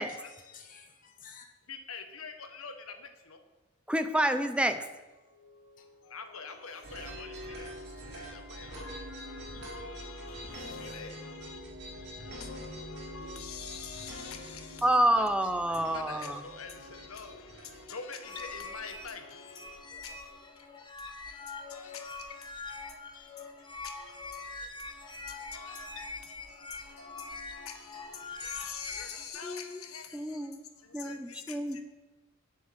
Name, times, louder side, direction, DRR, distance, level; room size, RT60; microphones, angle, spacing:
voice 1, 0.0-1.5 5.8-5.9 12.9-13.4 19.9-20.4, left 5 dB, 40° left, 3 dB, 1.2 m, -54 dB
voice 2, 1.7-3.4 5.3-11.6 11.9-15.1 15.7-20.9 21.2-31.8, left 5 dB, 85° left, 6 dB, 1.4 m, -46 dB
voice 3, 3.9-4.8 14.8-16.4 29.4-29.8 30.1-30.6 30.9-31.8, right 1 dB, 5° right, 8 dB, 0.7 m, -28 dB
sound 1, 6.8-17.8, equal, 55° right, 4.1 m, -45 dB
sound 2, 18.2-29.3, left 3 dB, 20° left, 1.0 m, -44 dB
9.2 x 7.4 x 7.6 m, 1.2 s
head